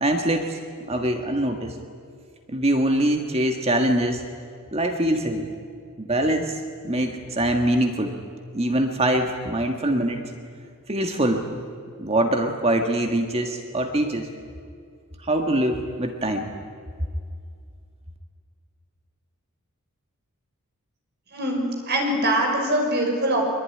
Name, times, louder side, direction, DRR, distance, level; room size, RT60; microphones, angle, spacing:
voice 1, 0.0-0.6 0.9-1.8 2.5-4.2 4.7-5.5 6.0-6.6 6.8-8.1 8.5-10.2 10.9-11.6 12.0-14.3 15.2-16.5, right 1 dB, 25° right, 4 dB, 1.7 m, -23 dB
voice 2, 21.3-23.4, right 1 dB, 45° right, 2 dB, 5.8 m, -23 dB
24.0 x 23.0 x 9.8 m, 2.2 s
head